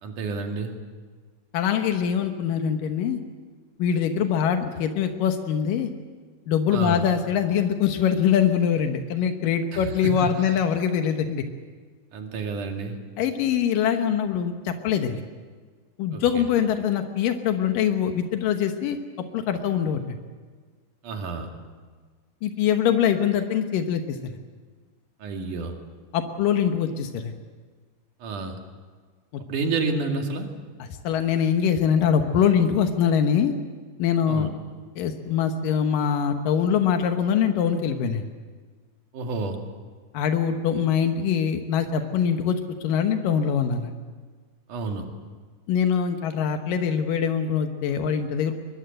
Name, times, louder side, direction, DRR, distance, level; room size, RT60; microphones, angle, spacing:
voice 1, 0.0-0.8 6.7-7.0 9.7-10.6 12.1-13.0 16.1-16.5 21.0-21.5 25.2-25.8 28.2-28.6 29.5-30.5 34.3-34.5 39.1-39.6 44.7-45.1, right 3 dB, 70° right, 3 dB, 3.7 m, -30 dB
voice 2, 1.5-3.2 3.8-5.9 6.5-11.4 13.2-15.2 16.0-19.0 19.3-20.2 22.4-24.3 26.1-27.3 29.3-29.4 30.8-33.5 34.0-34.5 35.0-38.2 40.1-43.9 45.7-48.6, left 8 dB, 90° left, 6 dB, 2.9 m, -23 dB
23.0 x 22.5 x 7.9 m, 1.5 s
omnidirectional pair, 3.8 m